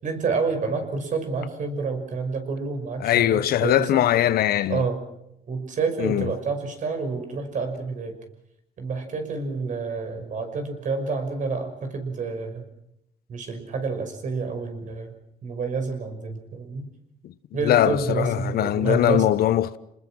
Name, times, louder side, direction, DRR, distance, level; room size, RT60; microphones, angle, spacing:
voice 1, 0.0-4.1 4.7-5.0 5.5-8.2 8.8-12.6 13.3-15.1 15.4-16.9 17.5-19.3, right 4 dB, 50° right, 5.7 m, -29 dB
voice 2, 3.0-4.8 6.0-6.3 17.2-17.3 17.6-19.8, left 12 dB, 65° left, 1.0 m, -21 dB
28.5 x 20.0 x 6.3 m
cardioid pair, 110°, 17 cm